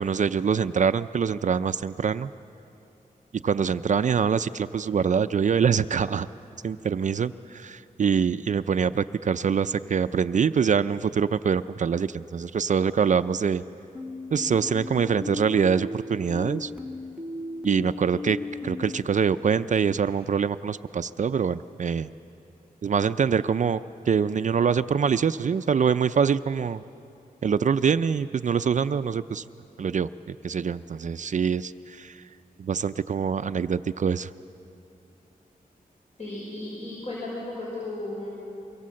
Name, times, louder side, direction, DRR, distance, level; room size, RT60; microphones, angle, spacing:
voice 1, 0.0-2.3 3.3-6.3 6.6-13.6 14.3-16.7 17.6-22.1 22.8-23.8 24.1-26.8 27.4-29.4 29.8-32.2 32.6-34.3, right 6 dB, 55° right, 12 dB, 0.5 m, -24 dB
sound 1, 13.9-19.0, left 2 dB, 5° right, 1.3 m, -36 dB
voice 2, 36.2-38.3, left 2 dB, 50° left, -5 dB, 5.9 m, -35 dB
25.5 x 23.5 x 7.6 m, 2.9 s
wide cardioid pair, 120°, 15 cm